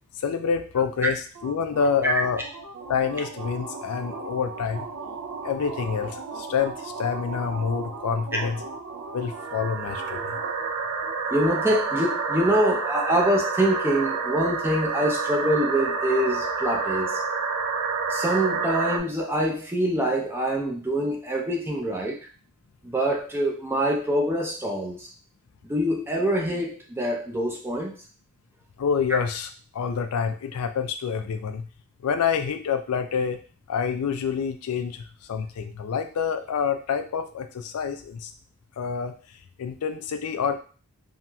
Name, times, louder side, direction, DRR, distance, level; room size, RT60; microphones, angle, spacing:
voice 1, 0.2-2.4 2.9-4.9 5.4-8.6 9.1-10.4 28.8-29.5 29.7-31.7 32.0-33.4 33.7-38.3 38.8-39.1 39.6-40.5, left 6 dB, 85° left, 7 dB, 0.4 m, -27 dB
sound 1, 1.4-19.0, right 4 dB, 75° right, 0.4 m, -30 dB
voice 2, 11.3-17.2 18.1-22.2 22.8-25.1 25.6-27.9, right 1 dB, 10° right, -1 dB, 0.5 m, -25 dB
2.9 x 2.8 x 2.2 m, 0.38 s
head